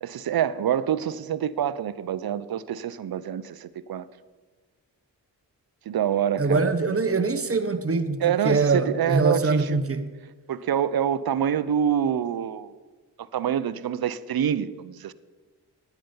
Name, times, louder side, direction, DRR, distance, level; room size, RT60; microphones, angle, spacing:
voice 1, 0.0-4.0 5.9-6.7 8.2-9.8 10.5-12.7 13.3-15.1, right 9 dB, 60° right, 0.6 m, -26 dB
voice 2, 6.4-10.1, right 3 dB, 35° right, 1.1 m, -23 dB
10.0 x 9.2 x 5.5 m
supercardioid pair, 40°, 42 cm